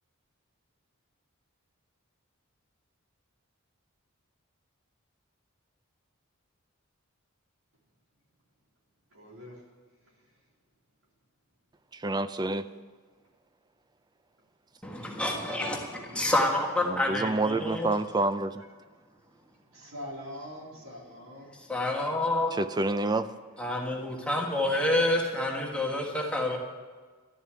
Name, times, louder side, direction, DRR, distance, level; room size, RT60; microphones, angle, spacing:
voice 1, 9.1-9.6 15.0-15.1 15.3-16.3 19.7-21.6, equal, 75° right, -3 dB, 3.8 m, -45 dB
voice 2, 11.9-12.7 16.8-18.6 22.5-23.3, right 2 dB, 20° right, 12 dB, 0.4 m, -28 dB
voice 3, 14.8-15.9 16.1-17.9 21.7-22.5 23.6-26.6, left 1 dB, 5° left, -1 dB, 1.5 m, -28 dB
12.5 x 6.9 x 9.3 m, 1.4 s
head